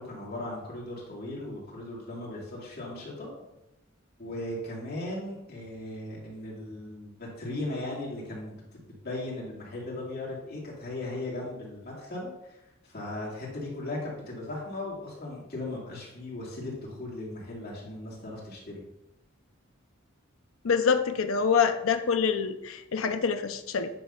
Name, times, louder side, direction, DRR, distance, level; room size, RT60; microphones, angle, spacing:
voice 1, 0.0-3.3 4.2-18.8, left 2 dB, 50° left, -5 dB, 2.8 m, -37 dB
voice 2, 20.6-23.9, left 6 dB, 85° left, 8 dB, 0.6 m, -26 dB
9.4 x 3.2 x 5.8 m, 0.89 s
head